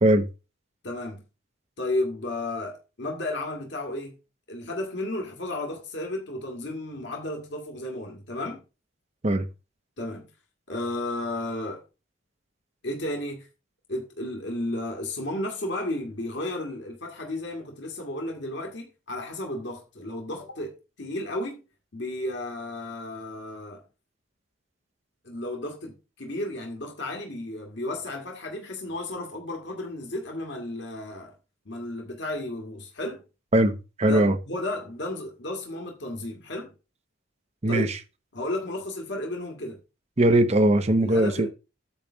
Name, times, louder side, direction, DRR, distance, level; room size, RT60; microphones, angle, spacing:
voice 1, 0.8-1.2 1.8-4.1 4.5-8.6 10.0-10.3 10.7-11.8 12.8-13.5 13.9-21.6 21.9-23.8 25.2-31.3 31.7-33.2 34.1-36.7 37.7-37.9 38.3-39.8 41.0-41.5, left 1 dB, 60° left, 1.8 m, -33 dB
voice 2, 33.5-34.4 37.6-38.0 40.2-41.5, right 1 dB, 30° right, 0.8 m, -20 dB
8.8 x 3.3 x 6.1 m
head